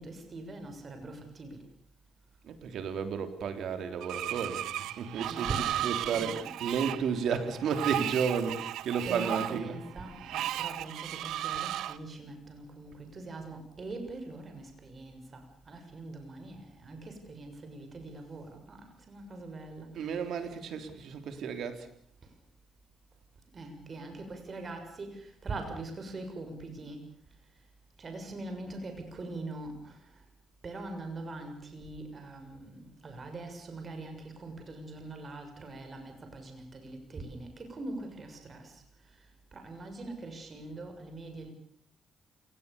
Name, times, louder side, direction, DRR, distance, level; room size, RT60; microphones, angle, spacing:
voice 1, 0.0-1.6 5.1-6.9 9.0-20.2 23.5-27.0 28.0-30.0 30.6-38.7 39.5-41.5, right 2 dB, 40° right, 5 dB, 6.7 m, -42 dB
voice 2, 2.4-4.7 5.0-9.8 19.9-21.9, right 6 dB, 70° right, 8 dB, 3.6 m, -33 dB
Screech, 4.0-12.0, right 12 dB, 85° right, 1.1 m, -35 dB
28.0 x 19.5 x 7.0 m, 0.63 s
cardioid pair, 90°, 0 cm